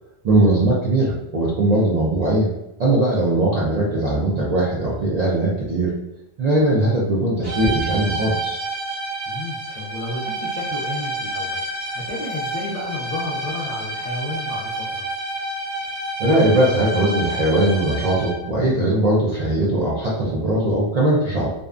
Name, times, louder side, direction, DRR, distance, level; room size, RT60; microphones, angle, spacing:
voice 1, 0.2-2.5 2.8-5.9 6.4-8.6 16.2-21.5, right 1 dB, 55° right, -5 dB, 0.4 m, -20 dB
sound 1, 7.4-18.5, right 1 dB, 75° right, 1.2 m, -29 dB
voice 2, 9.3-11.6 11.9-15.1, left 2 dB, 55° left, -6 dB, 0.4 m, -32 dB
2.6 x 2.1 x 2.4 m, 0.90 s
omnidirectional pair, 1.2 m